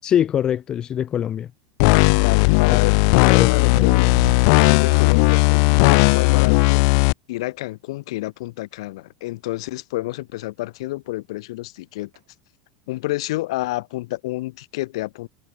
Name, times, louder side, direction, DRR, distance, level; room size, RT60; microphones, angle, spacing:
voice 1, 0.0-1.5 2.7-2.8 3.2-3.9, left 9 dB, 25° left, 1.6 m, -23 dB
sound 1, 1.8-7.1, left 36 dB, 50° left, 0.8 m, -16 dB
voice 2, 2.2-4.3 4.6-6.8 7.3-12.1 12.9-15.3, left 19 dB, 70° left, 6.0 m, -29 dB
sound 2, 3.7-5.3 6.1-6.3 12.1-12.2, right 17 dB, 75° right, 3.8 m, -36 dB
supercardioid pair, 165°, 3 cm